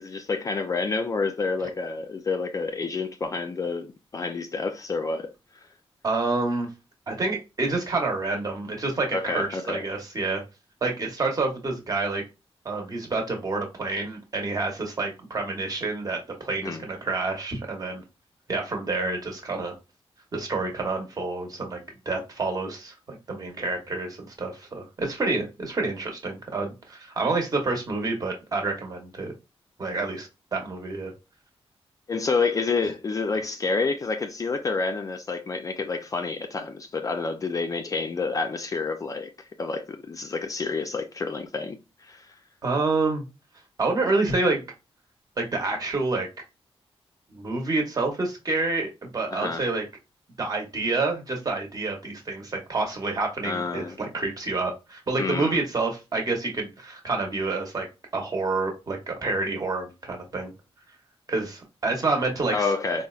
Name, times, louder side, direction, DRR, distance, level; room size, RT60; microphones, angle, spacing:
voice 1, 0.0-5.3 9.1-9.8 16.6-16.8 32.1-39.3 39.6-42.3 49.3-49.6 53.4-54.0 55.2-55.6 62.5-63.1, left 4 dB, 35° left, 0.3 m, -29 dB
voice 2, 6.0-6.7 7.1-10.4 10.8-12.2 12.6-18.0 18.5-19.8 20.3-29.3 29.8-31.1 42.6-43.2 43.8-44.6 45.4-46.3 47.3-49.8 50.4-57.9 58.1-60.5 61.3-62.7, right 3 dB, 35° right, 0.9 m, -28 dB
3.9 x 2.0 x 2.3 m
wide cardioid pair, 115°, 11 cm